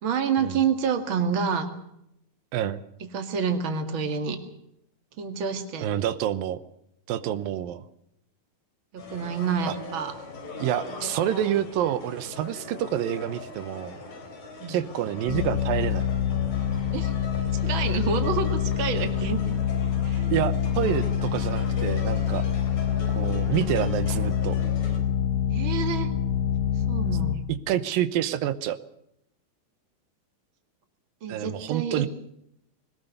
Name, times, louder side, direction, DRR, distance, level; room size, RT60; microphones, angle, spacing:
voice 1, 0.0-1.7 3.1-4.4 5.2-5.9 8.9-10.1 14.6-14.8 16.9-17.1 17.6-19.4 20.0-20.3 25.5-26.1 26.9-27.5 31.2-32.1, right 6 dB, 40° right, 7 dB, 2.5 m, -28 dB
voice 2, 5.8-6.6 7.1-7.8 9.7-9.8 10.6-14.0 14.7-16.1 20.3-22.4 23.1-24.6 27.7-28.8 31.3-32.1, right 11 dB, 85° right, 13 dB, 2.7 m, -28 dB
sound 1, 9.0-25.0, left 4 dB, 90° left, 6.0 m, -41 dB
sound 2, 15.3-27.4, left 9 dB, 60° left, 2.7 m, -26 dB
21.0 x 20.0 x 6.7 m, 0.76 s
omnidirectional pair, 3.9 m